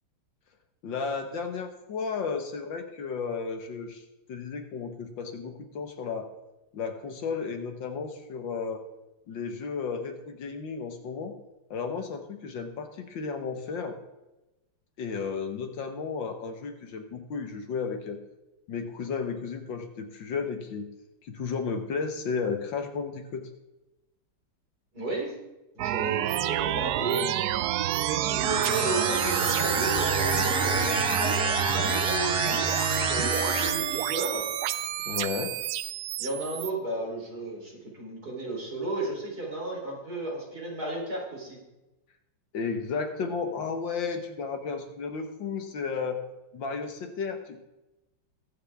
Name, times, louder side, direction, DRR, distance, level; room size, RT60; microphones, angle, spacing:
voice 1, 0.8-4.0 4.3-6.3 6.7-8.8 9.3-11.3 11.7-14.0 15.0-18.2 18.7-20.9 21.2-23.4 35.1-35.5 42.5-46.2 46.5-47.6, left 5 dB, 70° left, 6 dB, 1.9 m, -33 dB
voice 2, 24.9-25.3 25.8-27.3 28.0-34.5 36.2-41.6, right 2 dB, 50° right, -3 dB, 4.1 m, -33 dB
sound 1, 25.8-36.7, right 13 dB, 80° right, 0.9 m, -28 dB
sound 2, 28.4-33.9, right 1 dB, 5° right, 1.1 m, -29 dB
22.5 x 7.5 x 3.5 m, 1.0 s
omnidirectional pair, 2.2 m